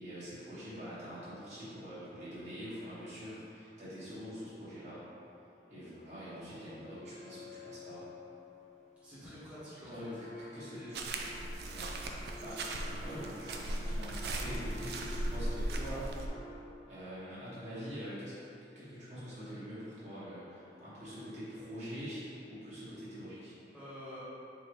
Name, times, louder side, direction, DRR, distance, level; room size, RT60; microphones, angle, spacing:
voice 1, 0.0-5.0 5.7-8.1 9.9-10.3 10.5-11.0 11.6-11.9 12.1-12.6 13.0-16.1 16.9-18.4 18.7-23.5, equal, 40° right, -11 dB, 1.1 m, -45 dB
sound 1, 6.7-16.6, left 1 dB, 40° left, 0.5 m, -50 dB
voice 2, 9.0-10.1 10.6-10.9 23.7-24.2, equal, 10° right, -13 dB, 1.1 m, -48 dB
footsteps grass forest, 10.9-16.3, right 1 dB, 65° right, 0.4 m, -37 dB
4.0 x 3.8 x 3.1 m, 2.9 s
head